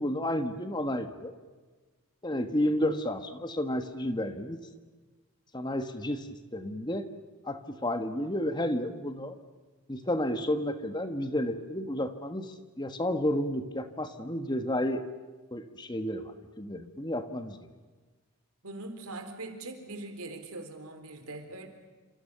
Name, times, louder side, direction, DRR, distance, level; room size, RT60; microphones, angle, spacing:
voice 1, 0.0-1.3 2.2-4.6 5.5-6.3 6.5-7.1 7.4-9.3 9.9-15.0 15.5-17.6, left 1 dB, 20° left, 8 dB, 1.5 m, -31 dB
voice 2, 18.6-21.7, right 2 dB, 80° right, 7 dB, 4.1 m, -41 dB
28.5 x 27.0 x 6.9 m, 1.3 s
head